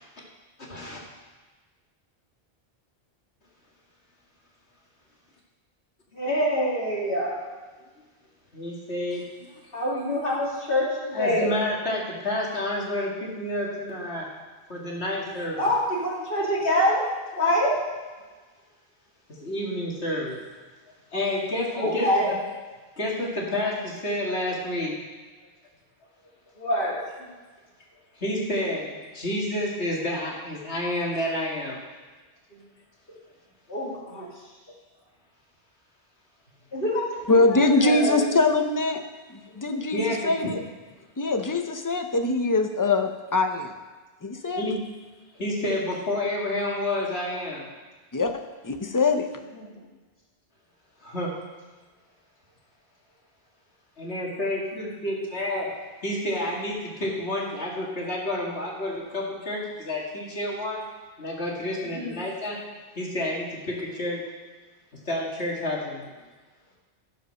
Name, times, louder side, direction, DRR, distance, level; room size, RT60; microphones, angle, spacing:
voice 1, 0.7-1.0 8.5-9.5 11.1-14.3 14.7-15.7 19.3-20.4 21.1-22.4 23.0-25.0 28.2-31.8 39.9-40.3 44.6-44.8 45.3-47.6 51.0-51.3 54.0-55.7 56.0-60.8 61.2-62.6 63.0-64.2 65.1-66.0, left 1 dB, 80° left, -3 dB, 2.4 m, -29 dB
voice 2, 6.1-7.4 9.7-11.5 15.6-17.0 17.3-17.7 20.1-20.2 21.8-22.3 26.6-27.0 33.7-34.2 36.7-38.2 49.5-49.7 61.9-62.2, equal, 55° left, -6 dB, 3.3 m, -25 dB
voice 3, 37.3-39.0 39.3-40.6 41.2-43.7 44.2-44.7 48.1-49.3, left 3 dB, 20° left, 6 dB, 0.7 m, -23 dB
15.5 x 5.4 x 6.4 m, 1.3 s
omnidirectional pair, 1.1 m